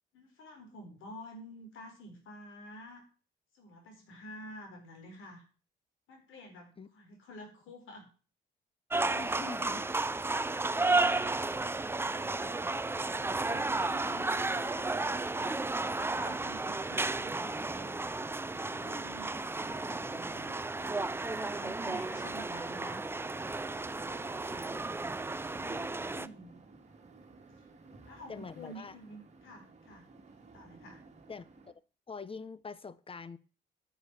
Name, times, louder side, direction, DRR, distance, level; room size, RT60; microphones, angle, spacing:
voice 1, 0.1-3.0 3.5-5.4 6.1-8.1 12.1-15.0 15.6-18.0 18.5-23.0 24.5-25.1 25.6-26.5 28.0-30.1 30.5-31.0, left 1 dB, 85° left, 4.2 m, -50 dB
sound 1, 8.9-26.3, right 3 dB, 10° right, 0.5 m, -33 dB
voice 2, 9.2-9.9 24.4-24.9 28.3-29.0 31.3-31.4 32.1-33.4, left 5 dB, 30° left, 0.8 m, -44 dB
sound 2, 16.9-31.7, right 3 dB, 35° right, 2.0 m, -56 dB
10.0 x 7.2 x 6.0 m
cardioid pair, 90°, 20 cm